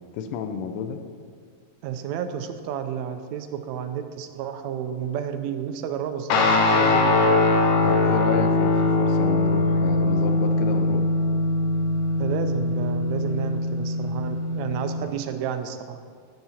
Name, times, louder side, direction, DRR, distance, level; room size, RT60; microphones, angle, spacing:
voice 1, 0.1-1.0 7.8-11.1, left 6 dB, 85° left, 8 dB, 2.4 m, -31 dB
voice 2, 1.8-7.4 12.2-16.0, right 8 dB, 75° right, 8 dB, 1.7 m, -31 dB
Guitar, 6.3-15.1, left 2 dB, 70° left, 2.2 m, -22 dB
10.5 x 7.9 x 5.7 m, 2.1 s
omnidirectional pair, 3.8 m